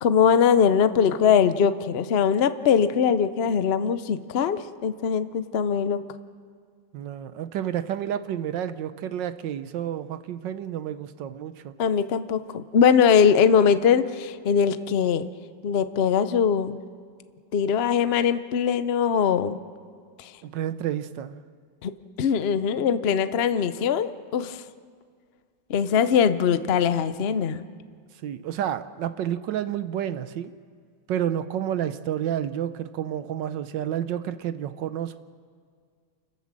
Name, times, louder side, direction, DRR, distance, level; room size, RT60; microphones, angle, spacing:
voice 1, 0.0-6.0 11.8-15.3 15.6-16.8 17.5-19.6 20.2-20.3 21.8-21.9 22.2-24.6 25.7-27.6, left 7 dB, 80° left, 12 dB, 0.5 m, -21 dB
voice 2, 6.9-11.7 20.4-21.3 28.2-30.5 31.1-35.2, right 10 dB, 70° right, 12 dB, 1.3 m, -30 dB
29.0 x 12.5 x 7.5 m, 2.1 s
omnidirectional pair, 2.2 m